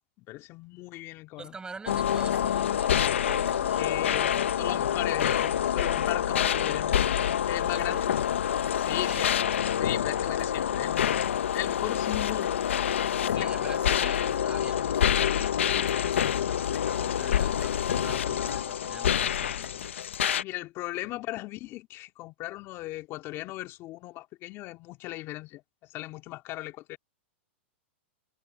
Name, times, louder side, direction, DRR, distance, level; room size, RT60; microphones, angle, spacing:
voice 1, 0.2-1.6 3.8-4.3 4.6-6.9 7.5-8.1 8.8-9.3 9.8-11.2 11.5-12.6 13.3-13.5 20.4-27.0, left 18 dB, 40° left, 2.6 m, -37 dB
voice 2, 1.4-4.9 7.7-8.1 9.0-9.3 10.3-10.5 13.2-19.9 21.0-21.1, right 4 dB, 10° right, 6.6 m, -46 dB
sound 1, 1.9-20.4, left 9 dB, 85° left, 1.3 m, -27 dB
hypercardioid pair, 125°, 7 cm